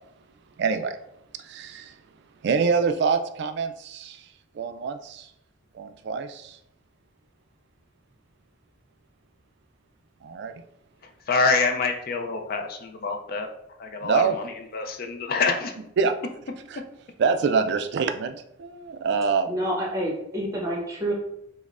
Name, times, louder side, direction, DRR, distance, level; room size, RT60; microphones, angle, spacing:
voice 1, 0.6-1.0 1.4-1.9 2.4-4.3 4.5-5.3 5.7-6.6 10.2-10.5 14.0-14.4 16.0-16.1 16.7-16.8 17.2-19.6, right 5 dB, 60° right, 8 dB, 0.3 m, -25 dB
voice 2, 11.3-13.5 13.8-15.7, left 4 dB, 50° left, 4 dB, 0.4 m, -26 dB
voice 3, 19.5-21.1, right 1 dB, 15° right, -2 dB, 0.8 m, -28 dB
5.2 x 2.0 x 2.4 m, 0.79 s
head